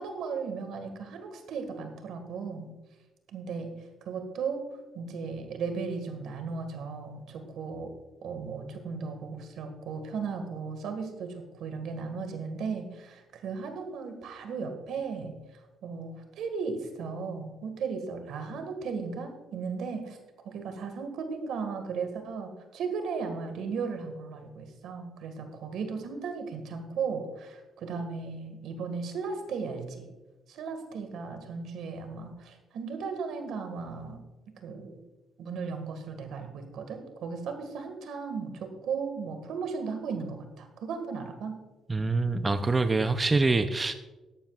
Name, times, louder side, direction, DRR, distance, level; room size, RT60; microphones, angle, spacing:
voice 1, 0.0-2.7 3.3-3.7 4.0-4.6 4.9-7.9 8.2-20.2 20.4-30.0 30.5-34.2 34.6-35.0 35.4-41.6, right 5 dB, 80° right, 6 dB, 1.8 m, -36 dB
voice 2, 41.9-43.9, right 3 dB, 25° right, 9 dB, 0.6 m, -25 dB
14.5 x 11.0 x 2.4 m, 1.1 s
cardioid pair, 90°, 0 cm